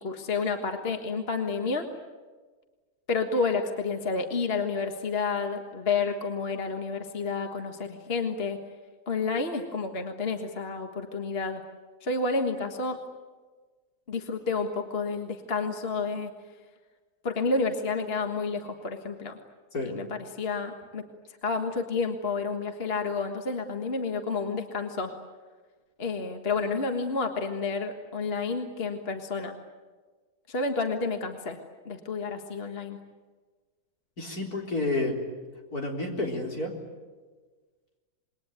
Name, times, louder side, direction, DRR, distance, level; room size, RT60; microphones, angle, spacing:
voice 1, 0.0-1.9 3.1-8.6 9.1-11.6 12.0-13.0 14.1-16.3 17.2-19.3 19.8-21.0 21.4-25.1 26.0-29.6 30.5-31.6 31.9-33.0, left 4 dB, 40° left, 5 dB, 1.7 m, -30 dB
voice 2, 34.2-35.1 35.7-36.7, left 2 dB, 70° left, 1 dB, 4.6 m, -30 dB
27.5 x 21.5 x 9.3 m, 1.4 s
omnidirectional pair, 1.7 m